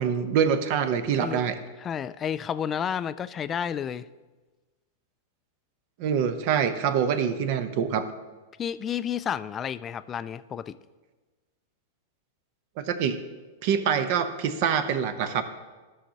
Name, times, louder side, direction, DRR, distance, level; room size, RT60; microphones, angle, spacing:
voice 1, 0.0-1.6 6.0-8.1 12.8-13.2 13.6-15.4, right 7 dB, 55° right, 10 dB, 0.8 m, -25 dB
voice 2, 1.8-4.1 8.6-10.8, left 8 dB, 25° left, 14 dB, 0.3 m, -31 dB
13.5 x 6.4 x 2.9 m, 1.3 s
hypercardioid pair, 100°, 0 cm